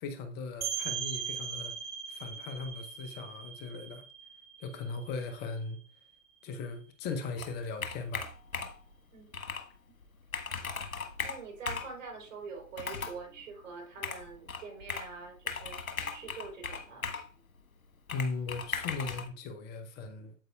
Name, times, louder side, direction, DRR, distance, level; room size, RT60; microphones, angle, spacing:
voice 1, 0.0-1.7 2.1-4.0 4.6-5.8 6.4-8.3 18.1-20.3, left 4 dB, 25° left, 0.7 m, -38 dB
sound 1, 0.6-6.1, right 7 dB, 20° right, 1.9 m, -40 dB
Computer keyboard, 7.4-8.9 9.3-9.7 10.0-10.1 10.3-11.9 12.7-13.2 14.0-15.1 15.5-17.3 18.1-19.3, left 5 dB, 80° left, 1.4 m, -37 dB
voice 2, 11.2-15.8 16.1-17.1, right 4 dB, 65° right, 3.9 m, -45 dB
8.9 x 7.9 x 2.3 m
figure-of-eight pair, 115°, 41 cm